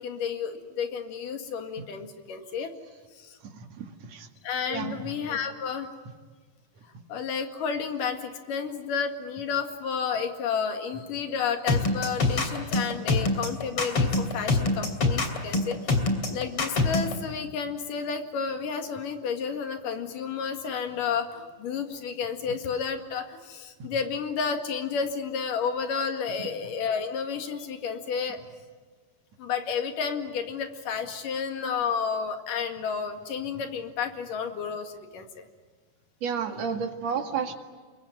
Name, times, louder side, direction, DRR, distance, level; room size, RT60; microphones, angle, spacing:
voice 1, 0.0-2.7 3.2-3.4 4.4-5.9 7.1-16.0 16.3-28.4 29.4-35.5, left 6 dB, 80° left, 6 dB, 3.6 m, -31 dB
voice 2, 3.5-4.3 4.7-5.0 26.4-26.5 36.2-37.6, right 6 dB, 55° right, 6 dB, 3.0 m, -31 dB
sound 1, 11.7-17.1, left 3 dB, 45° left, 3.7 m, -24 dB
27.0 x 23.0 x 9.3 m, 1.5 s
omnidirectional pair, 3.8 m